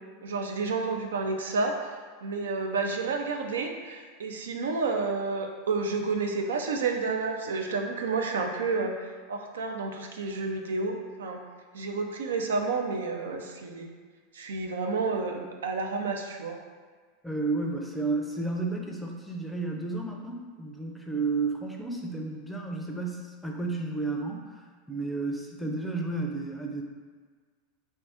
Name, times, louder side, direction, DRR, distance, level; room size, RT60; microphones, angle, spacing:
voice 1, 0.2-11.4 11.7-13.9 14.3-16.6, right 4 dB, 85° right, 3 dB, 0.3 m, -30 dB
voice 2, 17.2-24.6 24.9-26.8, right 3 dB, 5° left, 0 dB, 0.5 m, -32 dB
2.6 x 2.4 x 3.4 m, 1.5 s
hypercardioid pair, 100°, 0 cm